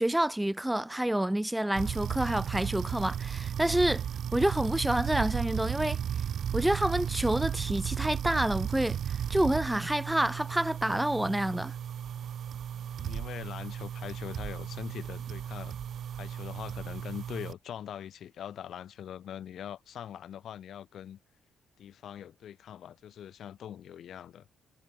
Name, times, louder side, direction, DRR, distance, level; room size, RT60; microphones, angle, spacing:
voice 1, 0.0-4.0 4.3-6.0 6.5-11.7, right 1 dB, 5° right, 0.4 m, -28 dB
sound 1, 1.7-17.5, right 9 dB, 65° right, 0.9 m, -35 dB
voice 2, 13.0-15.7 16.1-21.2 21.8-24.5, left 10 dB, 65° left, 2.4 m, -42 dB
cardioid pair, 90°, 0 cm